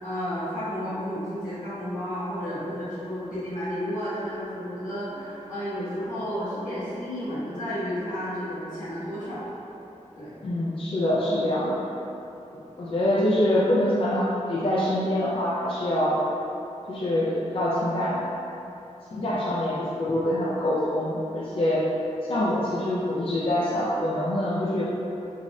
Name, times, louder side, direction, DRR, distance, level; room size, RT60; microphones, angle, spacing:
voice 1, 0.0-9.4 10.2-10.3 11.2-11.5, equal, 80° left, -13 dB, 1.4 m, -32 dB
voice 2, 10.4-11.8 12.5-16.2 16.9-18.2 19.1-21.8 22.3-24.8, left 1 dB, 45° left, -7 dB, 0.4 m, -25 dB
3.9 x 2.6 x 2.4 m, 3.0 s
wide cardioid pair, 110°, 13 cm